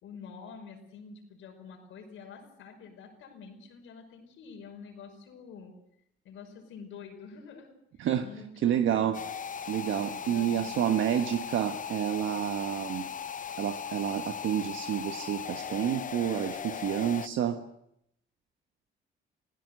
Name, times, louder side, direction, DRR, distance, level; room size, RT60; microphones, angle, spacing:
voice 1, 0.0-5.7 6.2-7.7 8.2-9.1 10.1-11.0 13.0-13.1, left 5 dB, 80° left, 4 dB, 5.5 m, -47 dB
voice 2, 8.6-9.2 9.7-13.0 13.6-17.6, right 10 dB, 75° right, 7 dB, 1.4 m, -29 dB
sound 1, 9.1-17.3, left 7 dB, 40° left, 0.8 m, -38 dB
26.0 x 16.5 x 7.9 m, 0.75 s
cardioid pair, 90°, 20 cm